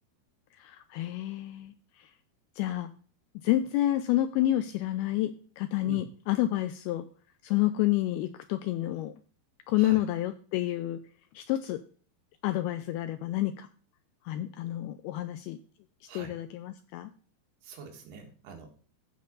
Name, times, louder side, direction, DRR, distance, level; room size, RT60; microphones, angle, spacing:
voice 1, 0.5-2.1 2.6-2.9 3.4-7.1 7.4-9.1 9.7-11.0 11.3-11.8 12.4-13.7 14.3-15.6 16.2-17.1, left 14 dB, 85° left, 11 dB, 2.2 m, -29 dB
voice 2, 17.6-18.7, right 5 dB, 70° right, 2 dB, 3.6 m, -45 dB
14.5 x 5.5 x 3.9 m, 0.42 s
omnidirectional pair, 4.9 m